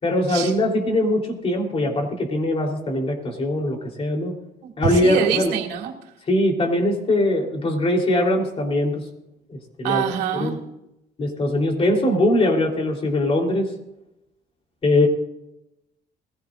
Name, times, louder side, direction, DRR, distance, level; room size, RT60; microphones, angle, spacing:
voice 1, 0.0-4.3 4.8-5.5 6.3-9.0 9.5-10.0 10.4-10.6 11.2-13.7 14.8-15.1, left 1 dB, 35° left, 1 dB, 3.7 m, -21 dB
voice 2, 4.6-5.9 9.8-10.5, right 9 dB, 90° right, 1 dB, 2.5 m, -25 dB
21.5 x 15.5 x 2.6 m, 0.89 s
cardioid pair, 110°, 17 cm